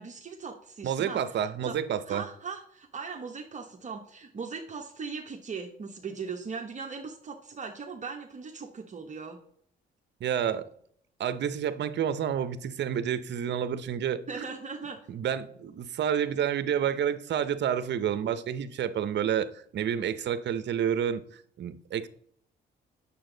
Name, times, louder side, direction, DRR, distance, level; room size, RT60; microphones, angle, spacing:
voice 1, 0.0-1.4 1.6-1.8 2.1-9.4 14.3-15.0, right 5 dB, 35° right, 1.1 m, -39 dB
voice 2, 0.8-2.2 10.2-10.6 11.2-14.2 15.1-21.2 21.6-22.1, right 9 dB, 60° right, 0.8 m, -29 dB
8.7 x 7.1 x 3.9 m
cardioid pair, 90°, 20 cm